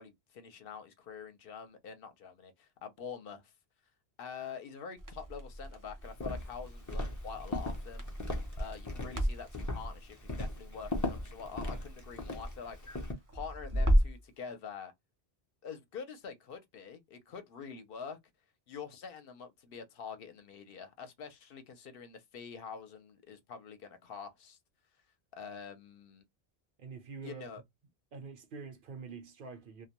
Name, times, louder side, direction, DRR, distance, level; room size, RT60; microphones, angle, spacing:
voice 1, 0.0-3.5 4.2-8.0 8.6-12.8 13.3-14.9 15.6-18.2 18.7-24.6 25.3-26.2 27.2-27.6, left 6 dB, 70° left, 0.8 m, -46 dB
Crackle, 5.0-14.3, equal, 25° right, 0.5 m, -35 dB
Walk footsteps, 6.1-13.1, left 1 dB, 25° left, 0.4 m, -38 dB
voice 2, 26.8-27.5 28.1-29.9, right 5 dB, 60° right, 0.7 m, -46 dB
2.2 x 2.1 x 2.8 m
omnidirectional pair, 1.0 m